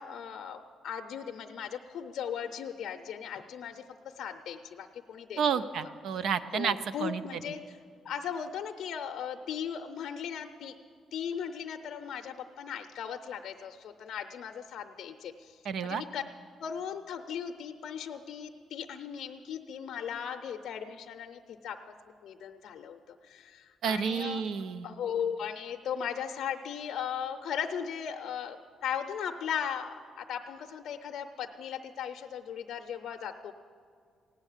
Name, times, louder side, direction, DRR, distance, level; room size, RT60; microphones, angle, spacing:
voice 1, 0.0-3.8 4.1-5.7 6.5-7.8 8.0-10.7 11.1-16.2 16.6-21.9 22.2-24.4 24.8-33.5, left 8 dB, 70° left, 5 dB, 0.5 m, -37 dB
voice 2, 5.4-7.2 15.6-16.0 23.8-24.9, right 7 dB, 70° right, 13 dB, 0.6 m, -30 dB
16.0 x 9.8 x 7.3 m, 2.2 s
cardioid pair, 90°, 0 cm